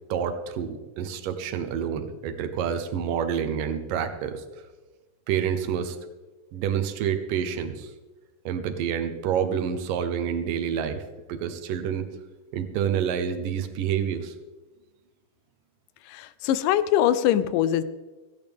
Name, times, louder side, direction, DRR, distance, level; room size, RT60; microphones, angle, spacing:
voice 1, 0.1-4.4 5.3-6.0 6.5-7.9 8.5-11.0 11.3-12.1 12.5-14.3, right 8 dB, 85° right, 8 dB, 2.7 m, -28 dB
voice 2, 16.1-17.8, left 11 dB, 85° left, 14 dB, 2.3 m, -22 dB
16.0 x 16.0 x 3.5 m, 1.2 s
omnidirectional pair, 3.8 m